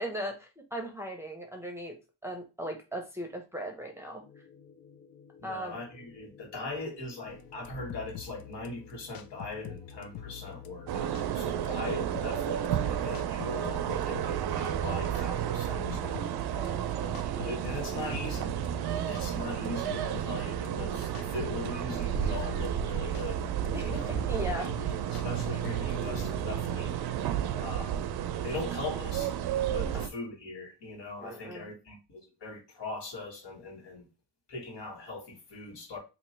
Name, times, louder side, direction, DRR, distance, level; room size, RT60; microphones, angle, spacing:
voice 1, 0.0-4.5 5.4-5.8 16.5-17.3 23.7-24.7 31.2-31.7, right 1 dB, 5° right, 0.7 m, -38 dB
sound 1, 4.2-11.2, left 6 dB, 30° left, 1.7 m, -55 dB
voice 2, 5.4-16.5 17.2-18.5 18.9-23.4 23.8-27.0 27.6-28.0 28.4-29.3 29.7-34.1 34.5-36.0, left 3 dB, 70° left, 2.1 m, -40 dB
sound 2, 7.3-27.0, left 7 dB, 55° left, 0.6 m, -46 dB
sound 3, 10.9-30.1, right 10 dB, 60° right, 0.5 m, -32 dB
2.9 x 2.8 x 4.3 m
cardioid pair, 125°, 43 cm